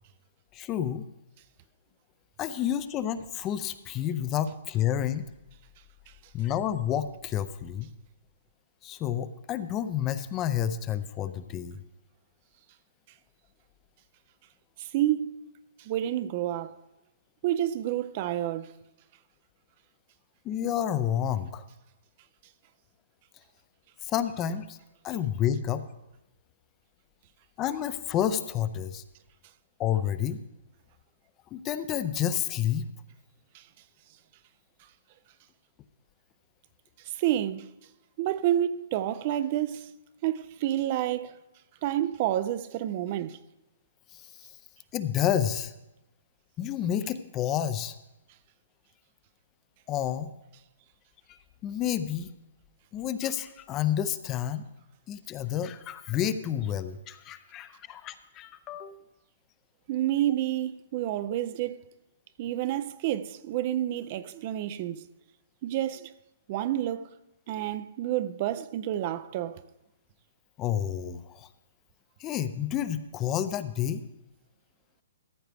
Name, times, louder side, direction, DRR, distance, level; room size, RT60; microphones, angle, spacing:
voice 1, 0.5-1.0 2.4-5.3 6.3-7.9 8.8-11.8 20.4-21.6 24.0-24.8 25.0-25.8 27.6-29.0 29.8-30.4 31.5-32.9 44.1-44.3 44.9-45.7 46.6-47.9 49.9-50.3 51.6-52.3 52.9-54.6 55.1-59.0 70.6-71.5 72.2-74.1, left 10 dB, 25° left, 0.5 m, -30 dB
voice 2, 14.8-15.4 15.8-16.7 17.4-18.7 33.5-33.6 37.1-37.7 38.2-39.9 40.2-41.4 41.8-43.4 59.9-61.8 62.4-65.0 65.6-66.1 66.5-67.1 67.5-69.6, right 12 dB, 40° right, 0.4 m, -29 dB
14.0 x 7.8 x 3.4 m
hypercardioid pair, 140°, 0 cm